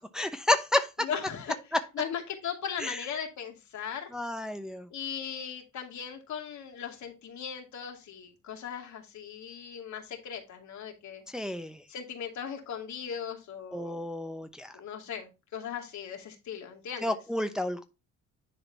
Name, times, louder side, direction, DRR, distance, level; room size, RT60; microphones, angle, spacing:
voice 1, 0.1-1.1 2.8-3.0 4.1-4.9 11.3-11.8 13.7-14.7 17.0-17.8, left 1 dB, ahead, 8 dB, 0.8 m, -30 dB
voice 2, 1.0-1.6 1.9-4.1 4.9-11.2 11.9-14.0 14.7-17.2, left 8 dB, 70° left, 3 dB, 2.4 m, -38 dB
10.5 x 4.0 x 4.0 m, 0.26 s
cardioid pair, 90°, 30 cm